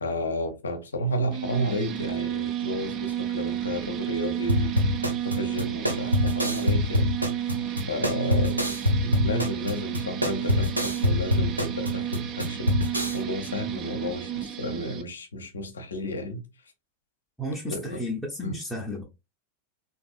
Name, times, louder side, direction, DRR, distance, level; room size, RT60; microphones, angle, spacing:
voice 1, 0.0-7.1 7.9-8.7 9.0-16.4 17.7-18.1 18.4-18.6, left 1 dB, 70° left, 0.7 m, -32 dB
sound 1, 1.3-15.0, right 11 dB, 35° right, 0.5 m, -32 dB
sound 2, 4.5-13.2, left 1 dB, 85° right, 0.6 m, -25 dB
voice 2, 17.4-19.0, left 1 dB, 5° left, 0.8 m, -32 dB
3.3 x 2.7 x 2.4 m
figure-of-eight pair, 90°, 0 cm